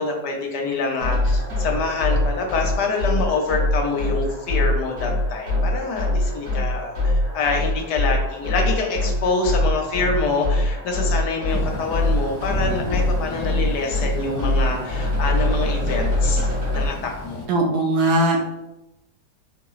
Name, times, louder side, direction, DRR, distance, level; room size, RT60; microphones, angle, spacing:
voice 1, 0.0-16.5 16.7-17.4, left 3 dB, 75° left, 2 dB, 1.2 m, -26 dB
sound 1, 1.0-16.9, left 1 dB, 85° right, 2.2 m, -23 dB
Thunder / Rain, 11.5-17.4, left 2 dB, 15° left, 0.9 m, -34 dB
voice 2, 17.5-18.4, right 2 dB, 70° right, 0 dB, 1.1 m, -19 dB
4.5 x 2.9 x 2.3 m, 0.93 s
omnidirectional pair, 1.9 m